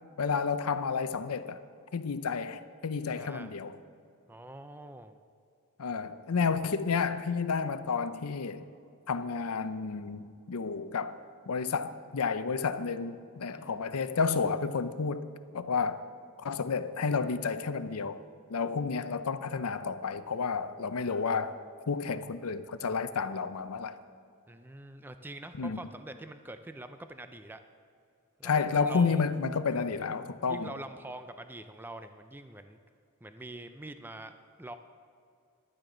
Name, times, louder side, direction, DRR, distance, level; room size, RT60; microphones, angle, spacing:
voice 1, 0.2-1.6 1.9-3.7 5.8-8.6 9.1-11.2 11.5-15.3 15.5-16.0 16.4-18.2 18.5-21.6 21.9-24.0 25.6-25.8 28.4-30.7, left 5 dB, 80° left, 0.6 m, -31 dB
voice 2, 3.1-3.5 4.3-5.2 13.5-13.8 24.5-27.6 28.4-29.3 29.7-30.1 30.5-32.8 33.2-34.8, right 1 dB, 10° right, 0.4 m, -45 dB
15.5 x 12.0 x 3.9 m
head